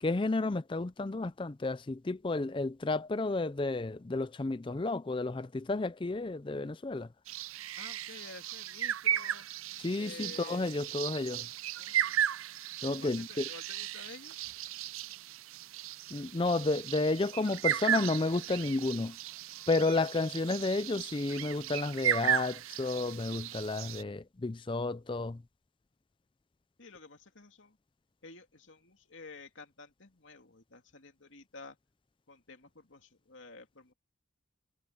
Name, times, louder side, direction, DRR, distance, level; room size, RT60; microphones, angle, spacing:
voice 1, 0.0-7.1 9.8-11.5 12.8-13.4 16.1-19.2 19.7-25.4, left 2 dB, 25° left, 0.4 m, -31 dB
sound 1, 7.3-24.0, right 10 dB, 80° right, 0.5 m, -36 dB
voice 2, 7.8-9.5 9.9-10.8 11.7-12.2 13.0-14.8 26.8-27.8 28.2-31.8 32.3-33.9, left 3 dB, 65° left, 2.5 m, -51 dB
head